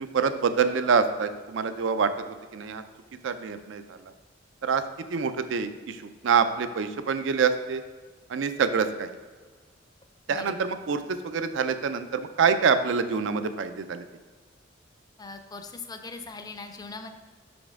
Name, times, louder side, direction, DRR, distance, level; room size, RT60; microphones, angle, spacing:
voice 1, 0.0-2.1 2.5-2.8 3.2-4.0 4.6-4.8 5.1-7.8 8.3-9.1 10.3-14.0, right 5 dB, 70° right, 10 dB, 0.4 m, -26 dB
voice 2, 15.2-17.1, left 3 dB, 20° left, 7 dB, 0.4 m, -40 dB
5.9 x 5.2 x 3.6 m, 1.5 s
head